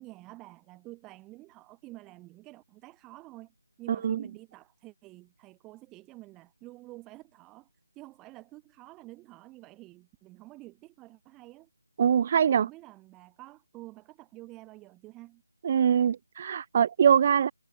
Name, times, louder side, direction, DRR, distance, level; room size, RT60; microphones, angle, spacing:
voice 1, 0.0-7.7 7.9-11.7 12.4-15.4, right 19 dB, 10° right, 4.8 m, -49 dB
voice 2, 12.0-12.7 15.6-17.5, right 8 dB, 25° right, 0.4 m, -23 dB
figure-of-eight pair, 165°, 0 cm